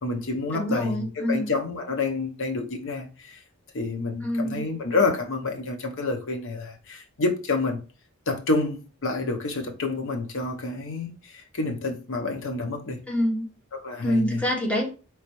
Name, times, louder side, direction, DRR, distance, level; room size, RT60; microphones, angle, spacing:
voice 1, 0.0-3.4 3.7-7.8 8.3-13.0 13.7-14.4, left 3 dB, 65° left, 0.8 m, -28 dB
voice 2, 0.5-1.5 4.2-4.6 13.1-13.5 14.0-14.9, equal, 5° left, 1.0 m, -25 dB
4.2 x 3.1 x 3.0 m
head